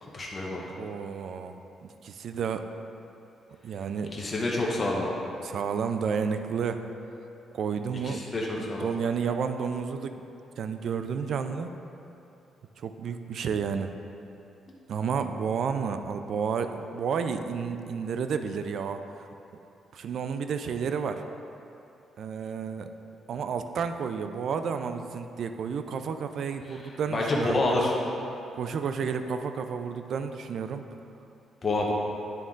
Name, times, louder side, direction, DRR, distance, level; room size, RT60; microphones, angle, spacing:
voice 1, 0.0-0.6 4.1-5.1 8.0-8.9 26.7-27.9 31.6-31.9, left 2 dB, 30° left, -3 dB, 0.9 m, -28 dB
voice 2, 0.8-2.6 3.6-4.1 5.4-6.8 7.5-8.2 8.6-10.2 10.6-11.7 12.8-13.9 14.9-19.0 19.9-21.2 22.2-22.9 23.3-27.8 28.6-30.8, right 6 dB, 65° right, 8 dB, 0.3 m, -31 dB
9.1 x 3.6 x 3.8 m, 2.8 s
cardioid pair, 90°, 0 cm